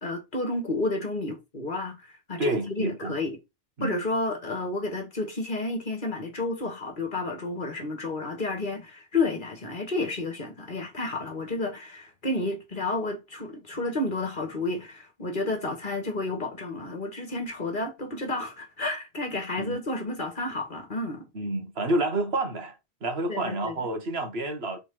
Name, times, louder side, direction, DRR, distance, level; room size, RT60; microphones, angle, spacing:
voice 1, 0.0-3.4 3.8-21.3 23.3-23.9, left 2 dB, 50° left, 1.9 m, -31 dB
voice 2, 2.4-3.1 3.8-4.0 19.6-19.8 21.3-22.7 23.0-24.8, right 1 dB, 70° right, 1.6 m, -29 dB
4.6 x 4.2 x 5.7 m
omnidirectional pair, 1.1 m